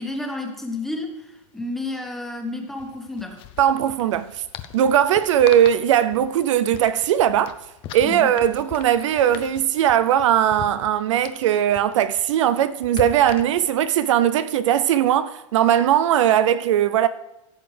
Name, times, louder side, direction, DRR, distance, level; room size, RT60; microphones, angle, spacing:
voice 1, 0.0-3.4 8.0-8.3, left 2 dB, ahead, 1.4 m, -31 dB
hands on phone noise, 0.7-0.8 1.1-1.2 2.7-13.9, left 11 dB, 30° left, 0.7 m, -41 dB
voice 2, 3.6-4.4 4.7-7.6 7.9-17.1, right 10 dB, 65° right, 0.5 m, -19 dB
15.5 x 7.0 x 3.4 m
hypercardioid pair, 145°, 17 cm